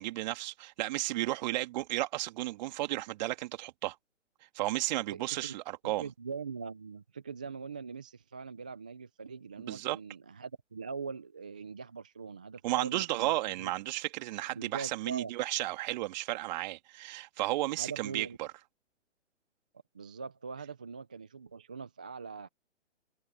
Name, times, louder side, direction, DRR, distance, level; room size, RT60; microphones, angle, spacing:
voice 1, 0.0-4.0 4.5-6.0 9.7-10.0 12.6-18.5, right 17 dB, 35° right, 2.7 m, -33 dB
voice 2, 4.9-5.5 5.8-13.7 14.5-15.3 17.8-18.4 19.9-22.5, right 5 dB, 5° right, 0.3 m, -42 dB
figure-of-eight pair, 130°, 37 cm